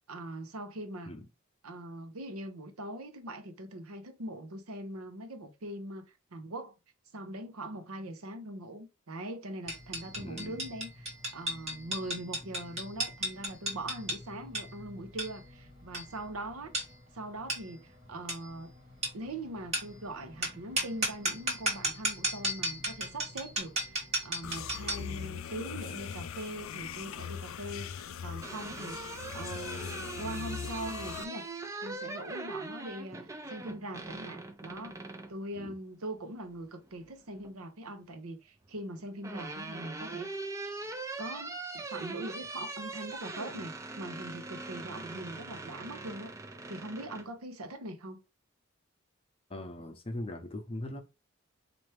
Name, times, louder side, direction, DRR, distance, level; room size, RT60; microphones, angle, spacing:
voice 1, 0.1-1.1 1.6-6.7 7.1-16.7 17.1-18.7 19.1-31.5 31.8-35.0 35.3-40.5 41.2-46.3 46.7-48.2, right 1 dB, 85° right, 0.8 m, -42 dB
sound 1, 9.7-25.1, right 1 dB, 30° right, 1.2 m, -35 dB
voice 2, 10.0-10.6 35.5-35.7 49.5-51.0, left 1 dB, 25° left, 0.6 m, -40 dB
sound 2, 24.4-31.3, left 7 dB, 70° left, 0.4 m, -40 dB
sound 3, 28.1-35.4 36.8-37.5 38.7-47.3, right 3 dB, 15° right, 0.3 m, -41 dB
4.3 x 2.5 x 3.3 m
head